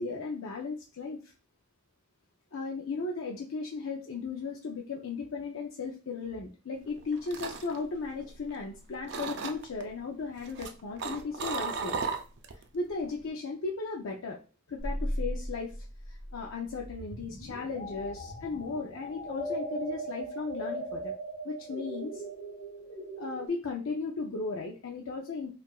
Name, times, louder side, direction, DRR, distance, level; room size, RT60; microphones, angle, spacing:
voice 1, 0.0-1.3 2.5-11.9 12.5-14.4 14.7-21.1 21.4-22.2 23.2-25.5, left 4 dB, 70° left, 0 dB, 0.5 m, -36 dB
sound 1, 6.9-8.7 9.1-9.8 10.4-12.6 12.9-13.3, right 5 dB, 55° right, 0.4 m, -36 dB
sound 2, 14.8-23.5, right 1 dB, 35° left, 0.8 m, -38 dB
4.6 x 2.4 x 2.3 m, 0.35 s
head